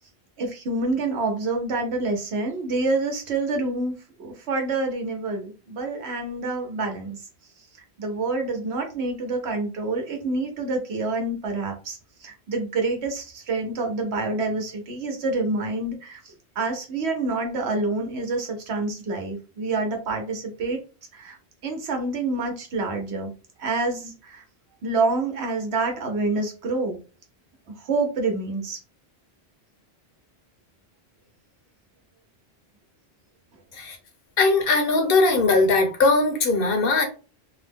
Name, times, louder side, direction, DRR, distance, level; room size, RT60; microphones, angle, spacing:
voice 1, 0.4-7.2 8.0-20.8 21.1-21.4 21.6-23.3 23.6-24.4 24.8-27.0 27.8-28.8, right 3 dB, 80° right, 3 dB, 1.0 m, -27 dB
voice 2, 34.4-37.0, left 3 dB, 60° left, 4 dB, 1.0 m, -20 dB
2.9 x 2.0 x 3.4 m, 0.34 s
omnidirectional pair, 1.1 m